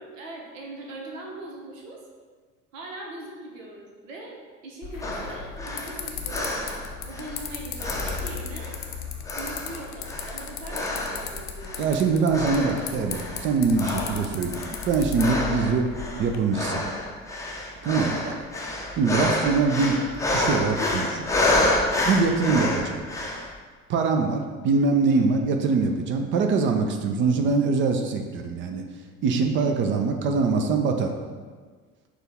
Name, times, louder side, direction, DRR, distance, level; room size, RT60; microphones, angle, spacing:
voice 1, 0.0-2.0 2.7-6.6 7.0-8.8 9.3-11.8 18.2-18.4 25.1-25.3, right 2 dB, 70° right, 0 dB, 1.0 m, -40 dB
sound 1, 4.8-16.4, left 7 dB, 55° left, 0.6 m, -36 dB
sound 2, 5.0-7.5 7.8-8.9 9.2-11.3 11.6-12.0 12.3-13.5 13.8-23.5, left 1 dB, 10° left, 0.6 m, -28 dB
voice 2, 11.8-15.9 16.2-16.9 17.8-18.3 19.0-21.3 22.1-23.1 23.9-28.8 29.2-31.2, right 4 dB, 30° right, 5 dB, 0.4 m, -23 dB
6.4 x 2.4 x 3.5 m, 1.5 s
figure-of-eight pair, 65°, 41 cm